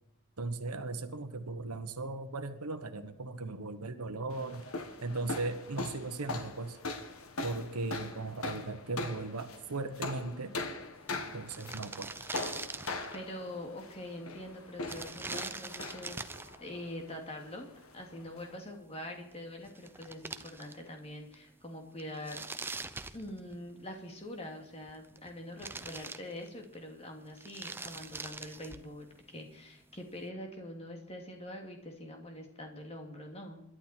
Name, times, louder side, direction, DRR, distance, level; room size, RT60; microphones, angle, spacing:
voice 1, 0.4-4.7 5.0-6.8 7.4-10.6 11.3-12.1, right 3 dB, 90° right, 9 dB, 1.2 m, -37 dB
sound 1, 4.3-18.6, left 2 dB, 70° left, 1.7 m, -42 dB
sound 2, 11.1-11.2 11.4-13.3 14.8-16.6 19.3-19.4 19.6-21.0 21.3-21.4 22.0-23.8 24.7-25.3 25.6-26.7 27.3-28.9, right 3 dB, 10° right, 0.5 m, -43 dB
voice 2, 13.1-16.2 16.6-22.4 23.1-33.6, left 1 dB, 25° left, 2 dB, 2.6 m, -44 dB
22.0 x 11.5 x 4.5 m, 0.82 s
head